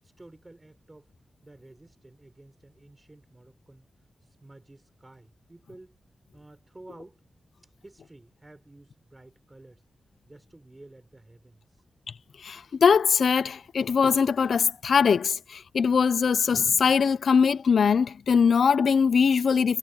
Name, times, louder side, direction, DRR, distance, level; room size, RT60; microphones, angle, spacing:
voice 1, 0.0-1.1 1.4-3.8 4.2-6.0 6.3-7.2 7.8-9.8 10.3-11.8, right 2 dB, 20° right, 4.9 m, -52 dB
voice 2, 12.4-19.8, left 6 dB, 80° left, 0.5 m, -22 dB
wide cardioid pair, 110°, 0 cm